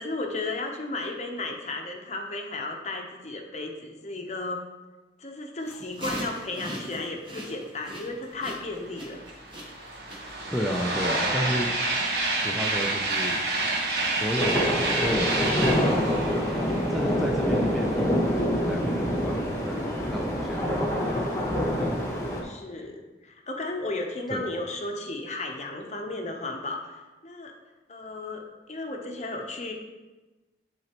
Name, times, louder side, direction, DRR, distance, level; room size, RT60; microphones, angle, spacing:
voice 1, 0.0-4.6 5.2-9.2 22.1-27.5 27.9-29.7, left 2 dB, 35° left, 2 dB, 0.8 m, -34 dB
sound 1, 5.7-10.7, right 1 dB, 25° right, 1.3 m, -39 dB
sound 2, 8.8-8.9 9.1-17.8, right 2 dB, 60° right, 1.2 m, -28 dB
voice 2, 10.5-11.7 12.3-13.7 14.0-16.5 16.9-21.3 21.7-22.0 24.3-24.5, equal, ahead, -1 dB, 0.4 m, -33 dB
sound 3, 14.4-22.4, equal, 15° left, 1.0 m, -26 dB
11.0 x 3.9 x 2.9 m, 1.2 s
head